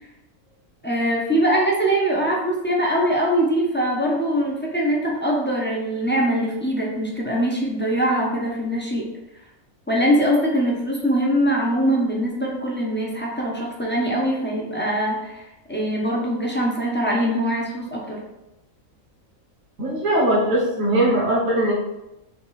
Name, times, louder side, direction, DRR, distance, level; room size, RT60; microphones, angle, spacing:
voice 1, 0.8-9.1 9.9-18.2, equal, 15° left, -3 dB, 0.4 m, -22 dB
voice 2, 19.8-21.7, right 1 dB, 75° right, -6 dB, 1.4 m, -20 dB
5.8 x 2.5 x 3.1 m, 0.93 s
omnidirectional pair, 1.4 m